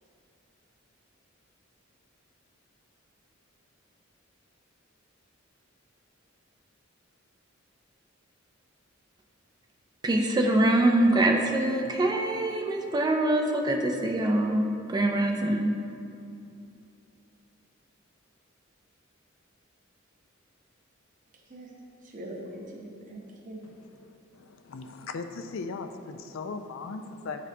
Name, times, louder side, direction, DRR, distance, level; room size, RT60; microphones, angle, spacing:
voice 1, 10.0-15.8, right 1 dB, 20° right, 2 dB, 0.3 m, -24 dB
voice 2, 21.3-21.7 22.0-23.6, right 1 dB, 40° right, -2 dB, 0.8 m, -42 dB
voice 3, 23.6-27.5, left 4 dB, 70° left, 8 dB, 0.4 m, -39 dB
10.0 x 4.1 x 2.7 m, 2.6 s
head